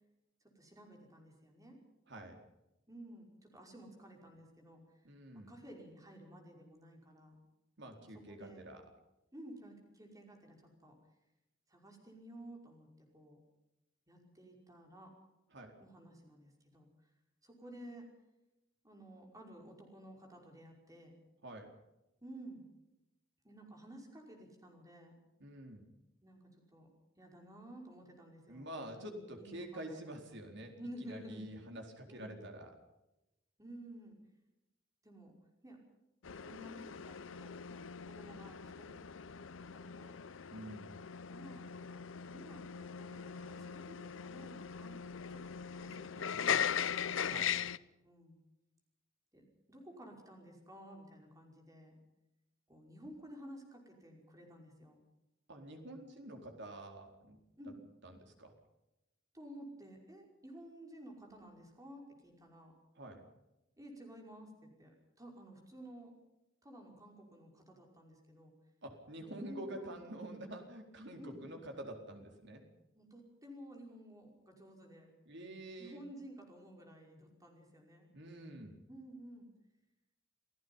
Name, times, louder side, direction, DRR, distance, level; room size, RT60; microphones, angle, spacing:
voice 1, 0.6-1.8 2.9-4.8 5.3-7.4 8.0-8.6 9.3-11.0 11.7-13.4 14.1-15.1 15.8-16.9 17.4-18.1 18.8-21.2 22.2-22.6 23.4-25.2 26.2-26.9 27.2-28.7 29.0-30.2 30.7-31.5 32.1-32.4 33.6-34.2 35.0-35.3 35.6-35.8 36.4-39.1 39.6-40.2 41.3-47.0 48.0-48.4 49.3-52.0 52.7-55.0 57.6-57.8 59.3-62.7 63.8-66.1 66.6-68.5 69.2-70.0 70.4-70.6 71.2-71.4 73.0-75.1 75.8-78.1 78.9-79.5, right 1 dB, 20° right, 1 dB, 5.5 m, -53 dB
voice 2, 2.1-2.4 5.0-5.5 7.8-8.8 15.5-15.7 21.4-21.7 25.4-25.9 28.5-32.8 40.5-41.0 47.2-47.6 55.5-57.4 58.0-58.5 63.0-63.2 68.8-72.6 75.3-76.0 78.1-78.8, right 1 dB, 60° right, 4 dB, 4.3 m, -47 dB
sound 1, 36.2-47.8, left 8 dB, 70° left, 0.7 m, -40 dB
28.0 x 16.5 x 5.6 m, 0.93 s
head